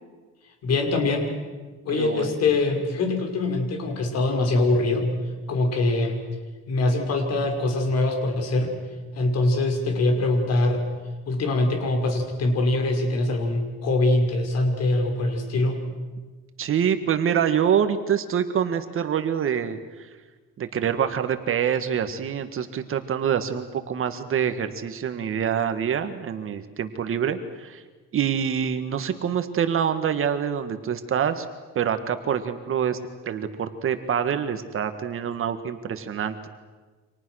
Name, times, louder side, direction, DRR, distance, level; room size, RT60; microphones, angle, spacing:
voice 1, 0.6-1.3 1.8-5.1 5.5-6.2 6.7-8.7 9.1-10.8 11.3-15.8, left 2 dB, 55° left, 4 dB, 5.9 m, -23 dB
voice 2, 1.9-2.3 16.6-20.1 20.6-27.8 28.1-31.5 31.8-33.0 33.2-36.5, right 8 dB, 45° right, 8 dB, 1.8 m, -26 dB
29.5 x 26.5 x 6.5 m, 1.3 s
cardioid pair, 125°, 30 cm